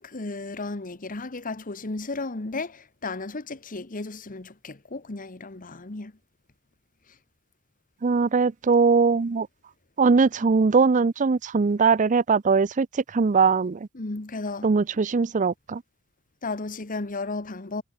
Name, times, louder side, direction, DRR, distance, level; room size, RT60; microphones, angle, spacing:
voice 1, 0.0-6.1 13.9-14.7 16.4-17.8, left 3 dB, 40° left, 1.2 m, -34 dB
voice 2, 8.0-9.5 10.0-13.8 14.6-15.8, right 4 dB, 35° right, 0.5 m, -21 dB
head